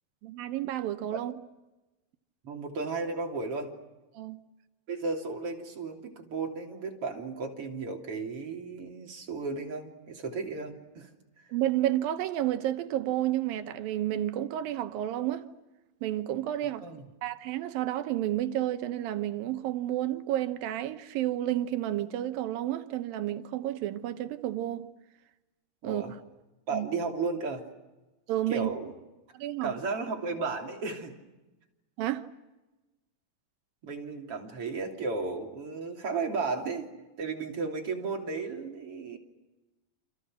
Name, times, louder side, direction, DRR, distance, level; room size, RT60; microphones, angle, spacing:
voice 1, 0.2-1.3 4.1-4.4 11.5-15.5 16.0-16.9 17.2-24.9 25.8-26.0 26.7-26.9 28.3-28.7 29.3-29.7 32.0-32.3, right 13 dB, 90° right, 2.9 m, -31 dB
voice 2, 2.4-3.7 4.9-11.1 11.4-11.5 16.8-17.0 25.8-26.1 26.7-27.6 28.5-28.9 29.6-31.1 33.8-36.9 37.2-39.2, right 4 dB, 40° right, 3.8 m, -34 dB
29.5 x 27.0 x 6.4 m
omnidirectional pair, 4.0 m